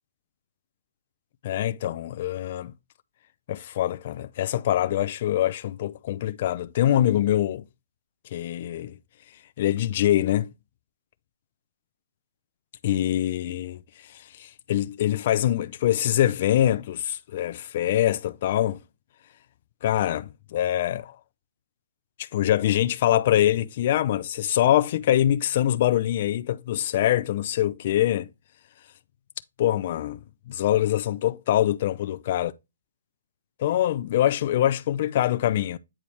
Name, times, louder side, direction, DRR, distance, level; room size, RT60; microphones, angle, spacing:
voice 1, 1.4-2.7 3.5-7.6 8.3-9.0 9.6-10.5 12.8-13.8 14.4-18.8 19.8-21.1 22.2-28.3 29.6-30.2 30.5-32.5 33.6-35.8, left 12 dB, 35° left, 0.5 m, -24 dB
8.6 x 4.5 x 3.3 m
hypercardioid pair, 165°, 0 cm